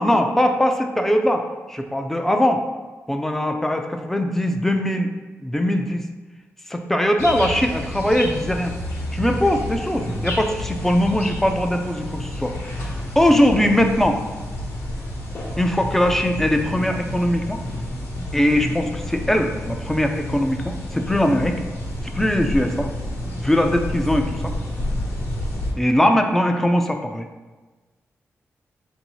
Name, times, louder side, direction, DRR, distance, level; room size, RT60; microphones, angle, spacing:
voice 1, 0.0-2.6 3.1-5.1 5.4-6.0 6.7-8.7 9.1-14.2 15.6-17.6 18.3-21.6 22.1-22.9 23.4-24.5 25.8-27.3, left 1 dB, 5° left, 5 dB, 0.4 m, -21 dB
sound 1, 7.2-25.7, left 1 dB, 60° left, 1.0 m, -30 dB
3.9 x 2.7 x 4.5 m, 1.2 s
wide cardioid pair, 130°, 5 cm